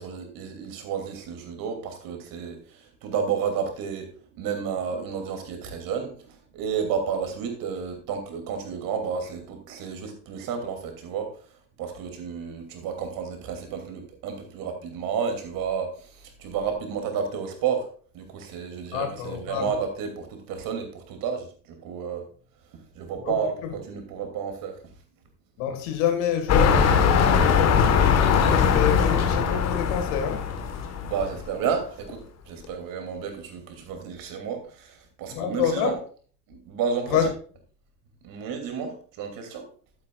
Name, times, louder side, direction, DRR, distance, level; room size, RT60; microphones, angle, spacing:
voice 1, 0.0-11.3 11.8-17.9 18.1-22.2 22.9-24.8 31.0-36.0 36.5-37.2 38.2-39.7, right 6 dB, 45° right, 2.8 m, -31 dB
voice 2, 18.9-19.7 23.2-23.4 23.6-23.7 25.6-30.5 35.3-36.0 37.1-37.3, left 8 dB, 50° left, 1.9 m, -28 dB
sound 1, 26.5-31.5 32.1-32.2, left 6 dB, 30° left, 1.4 m, -21 dB
11.5 x 9.5 x 2.4 m
figure-of-eight pair, 80°, 48 cm